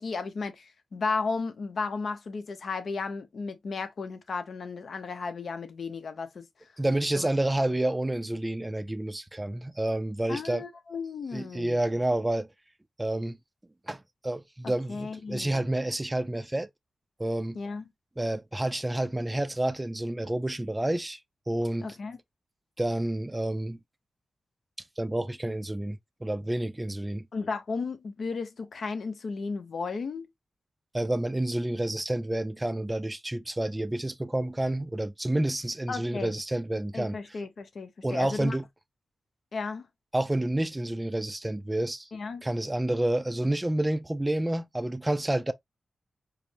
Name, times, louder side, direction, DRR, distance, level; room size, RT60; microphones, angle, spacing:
voice 1, 0.0-6.5 7.2-7.3 10.3-11.8 14.6-15.6 17.5-17.9 21.8-22.2 27.3-30.3 35.9-36.3 36.9-38.6 39.5-39.9 42.1-42.4, left 4 dB, 70° left, 0.7 m, -34 dB
voice 2, 6.8-10.6 11.3-12.5 13.0-13.4 13.9-16.7 17.2-17.6 18.2-21.2 21.5-22.0 22.8-23.8 25.0-27.3 30.9-37.2 38.0-38.6 40.1-42.1 42.4-45.5, right 1 dB, 15° right, 0.4 m, -29 dB
4.9 x 2.0 x 2.9 m
cardioid pair, 75°, 0 cm